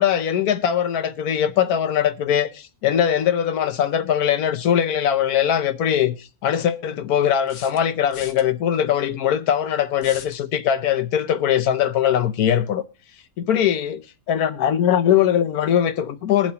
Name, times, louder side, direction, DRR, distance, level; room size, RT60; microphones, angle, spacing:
voice 1, 0.0-12.8 13.4-16.5, left 9 dB, 90° left, 1.3 m, -21 dB
sound 1, 5.4-5.5 7.5-8.4 10.0-10.4, left 8 dB, 60° left, 1.0 m, -40 dB
21.0 x 7.5 x 2.9 m
omnidirectional pair, 1.5 m